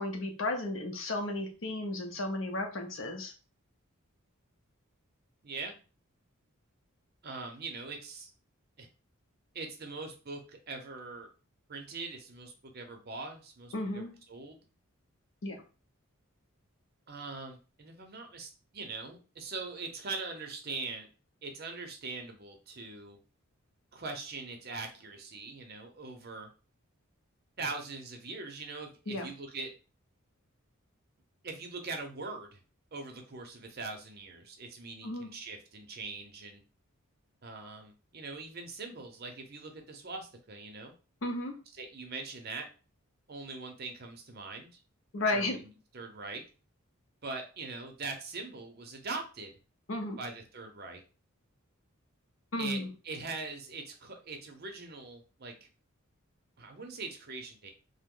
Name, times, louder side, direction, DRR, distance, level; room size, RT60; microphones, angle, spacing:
voice 1, 0.0-3.3 13.7-14.1 15.4-15.6 29.1-29.3 35.0-35.3 41.2-41.5 45.1-45.6 49.9-50.2 52.5-52.9, left 2 dB, 65° left, 3 dB, 0.7 m, -33 dB
voice 2, 5.4-5.7 7.2-8.3 8.8-8.9 9.5-10.4 10.7-11.3 11.7-14.6 17.1-21.1 21.4-23.2 23.9-26.5 27.6-29.7 31.4-32.6 32.9-36.6 37.4-40.9 41.8-42.7 43.3-44.7 45.3-46.4 47.2-49.5 50.2-51.0 52.6-55.7 56.6-57.7, right 3 dB, 45° right, 4 dB, 0.6 m, -42 dB
2.9 x 2.1 x 3.6 m, 0.35 s
head